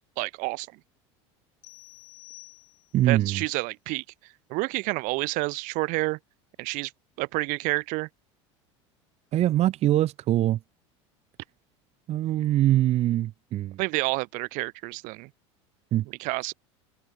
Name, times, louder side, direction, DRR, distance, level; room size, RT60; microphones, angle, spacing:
voice 1, 0.2-0.7 3.1-4.0 4.5-6.2 6.6-6.9 7.2-8.1 13.8-15.3 16.2-16.5, right 25 dB, 65° right, 1.6 m, -29 dB
sound 1, 1.6-3.2, left 40 dB or more, 70° left, 7.3 m, -50 dB
voice 2, 2.9-3.4 9.3-10.6 12.1-13.8 15.9-16.1, right 14 dB, 45° right, 1.1 m, -23 dB
open air
supercardioid pair, 100°, 15 cm